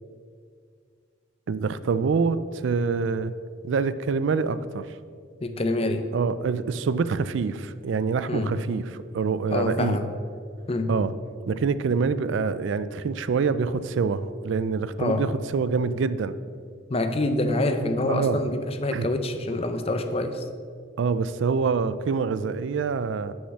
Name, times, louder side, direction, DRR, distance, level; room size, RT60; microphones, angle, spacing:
voice 1, 1.5-3.3 3.6-4.9 6.1-10.0 10.9-11.1 11.5-16.4 18.1-18.4 18.9-19.1 21.0-23.3, right 5 dB, 65° right, 14 dB, 0.4 m, -26 dB
voice 2, 5.4-6.1 8.3-8.6 9.5-10.1 10.7-10.9 15.0-15.3 16.9-20.5, left 2 dB, 30° left, 8 dB, 0.6 m, -26 dB
6.7 x 5.4 x 7.0 m, 2.1 s
head